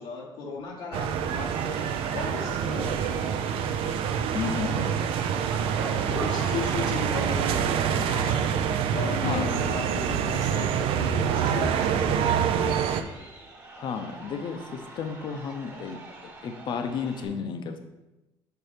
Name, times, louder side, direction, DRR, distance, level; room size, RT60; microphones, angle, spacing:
voice 1, 0.0-3.3 6.1-12.7, left 4 dB, 80° left, -4 dB, 1.1 m, -36 dB
sound 1, 0.9-13.0, right 8 dB, 70° right, 0.5 m, -26 dB
Crowd, 1.2-17.2, right 2 dB, 20° right, 1.2 m, -46 dB
sound 2, 2.4-2.9 3.7-7.7 7.9-8.4, left 1 dB, 5° left, 0.7 m, -44 dB
voice 2, 4.3-5.1 9.2-9.5 13.8-17.8, left 6 dB, 55° left, 6 dB, 0.7 m, -33 dB
6.1 x 4.6 x 5.0 m, 1.0 s
cardioid pair, 140°, 10 cm